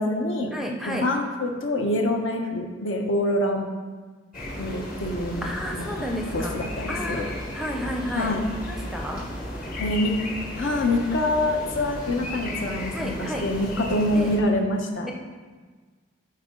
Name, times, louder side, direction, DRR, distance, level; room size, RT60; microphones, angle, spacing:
voice 1, 0.0-0.5 0.8-3.7 4.6-5.5 6.0-6.1 6.3-7.3 8.1-8.4 9.8-10.1 10.6-15.1, left 1 dB, 70° left, 2 dB, 0.9 m, -25 dB
voice 2, 0.5-1.1 5.4-6.6 6.9-8.3 8.7-9.2 12.9-13.4 14.1-14.3, equal, ahead, 1 dB, 0.6 m, -31 dB
sound 1, 4.3-14.4, left 1 dB, 45° left, 1.5 m, -34 dB
12.0 x 4.4 x 3.8 m, 1.4 s
head